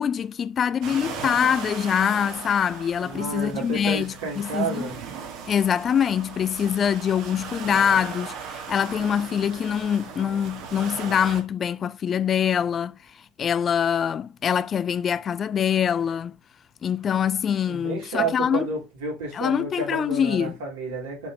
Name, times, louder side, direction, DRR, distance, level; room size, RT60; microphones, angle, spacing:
voice 1, 0.0-4.9 5.5-13.0 13.4-16.4 16.8-18.7 19.3-20.5, left 8 dB, 30° left, 0.3 m, -24 dB
sound 1, 0.8-11.4, right 6 dB, 50° right, 1.7 m, -38 dB
voice 2, 3.0-5.0 17.7-21.3, right 4 dB, 65° right, 3.7 m, -31 dB
6.2 x 5.7 x 4.0 m
figure-of-eight pair, 75°, 0 cm